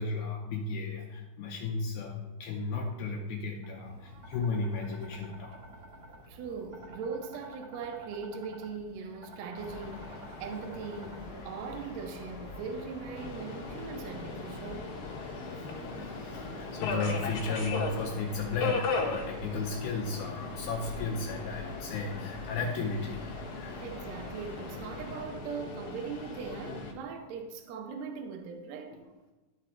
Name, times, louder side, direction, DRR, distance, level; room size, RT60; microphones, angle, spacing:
voice 1, 0.0-5.6 15.4-15.5 16.0-23.8, left 3 dB, 75° left, 2.1 m, -34 dB
sound 1, 3.6-11.4, right 1 dB, 45° right, 1.2 m, -50 dB
voice 2, 6.3-14.9 23.8-29.0, right 5 dB, 70° right, 1.8 m, -40 dB
sound 2, 9.5-25.3, left 3 dB, 40° left, 1.6 m, -45 dB
Subway metro underground, 13.2-26.9, left 3 dB, 60° left, 1.9 m, -38 dB
12.0 x 4.1 x 4.3 m
omnidirectional pair, 3.6 m